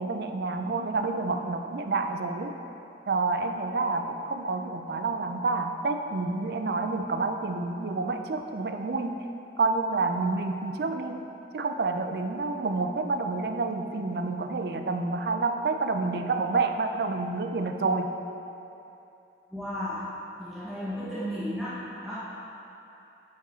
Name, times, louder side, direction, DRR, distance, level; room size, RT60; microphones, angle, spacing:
voice 1, 0.0-2.6 3.1-9.2 9.6-11.2 11.5-18.1, right 3 dB, 65° right, 6 dB, 0.4 m, -28 dB
voice 2, 19.5-20.0 20.4-22.2, equal, ahead, -12 dB, 0.9 m, -34 dB
8.3 x 4.8 x 4.4 m, 2.9 s
head